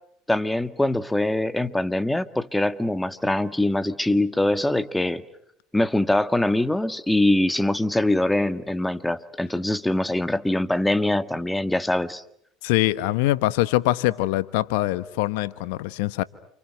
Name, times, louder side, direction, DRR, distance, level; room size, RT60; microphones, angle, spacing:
voice 1, 0.3-5.2 5.7-12.2, left 1 dB, 5° left, 1.7 m, -23 dB
voice 2, 12.6-16.2, left 17 dB, 75° left, 1.2 m, -23 dB
29.5 x 29.0 x 6.4 m
hypercardioid pair, 80°, 0 cm